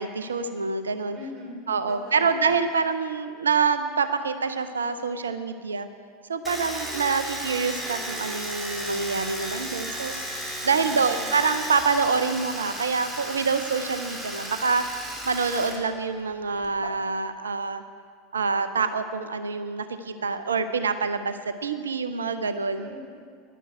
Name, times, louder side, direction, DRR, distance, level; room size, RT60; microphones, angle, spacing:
voice 1, 0.0-1.2 1.7-5.9 6.3-10.1 10.6-14.8 15.2-17.8 18.3-23.0, right 5 dB, 75° right, 11 dB, 0.5 m, -26 dB
voice 2, 1.1-1.5 1.9-2.3 10.8-11.1 22.7-23.0, left 1 dB, 30° right, -1 dB, 3.9 m, -41 dB
Domestic sounds home sounds, 6.4-15.8 16.0-16.9, right 1 dB, 10° right, 2.5 m, -34 dB
11.0 x 11.0 x 7.9 m, 2.1 s
figure-of-eight pair, 80°, 0 cm